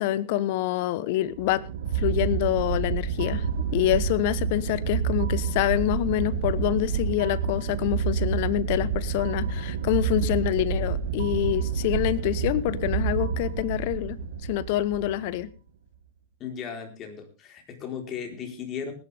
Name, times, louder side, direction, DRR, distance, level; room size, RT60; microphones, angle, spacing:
voice 1, 0.0-1.7 1.9-3.4 3.7-14.2 14.5-15.5, left 14 dB, 55° left, 19 dB, 1.0 m, -26 dB
sound 1, 1.3-15.5, right 6 dB, 70° right, 1.8 m, -28 dB
voice 2, 16.4-18.9, left 7 dB, 35° left, 4 dB, 4.3 m, -36 dB
19.5 x 11.0 x 3.6 m, 0.31 s
hypercardioid pair, 105°, 0 cm